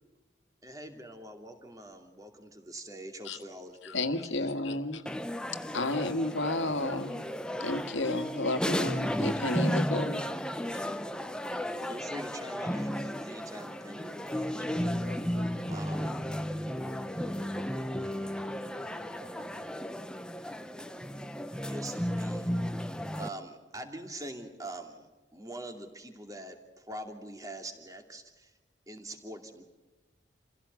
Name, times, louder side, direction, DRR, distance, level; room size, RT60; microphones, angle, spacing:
voice 1, 0.6-4.9 7.8-8.1 11.3-14.9 15.7-16.2 21.7-22.5 22.8-28.6 28.9-29.6, right 1 dB, 20° right, 5 dB, 2.6 m, -44 dB
voice 2, 3.8-5.0 5.7-7.3 7.6-10.2 10.7-10.9, left 2 dB, 85° left, 8 dB, 1.8 m, -32 dB
sound 1, 5.1-23.3, equal, 5° left, 0.8 m, -34 dB
voice 3, 14.8-17.0 17.5-19.7, equal, 75° right, 5 dB, 4.3 m, -52 dB
28.5 x 16.5 x 8.2 m, 1.2 s
head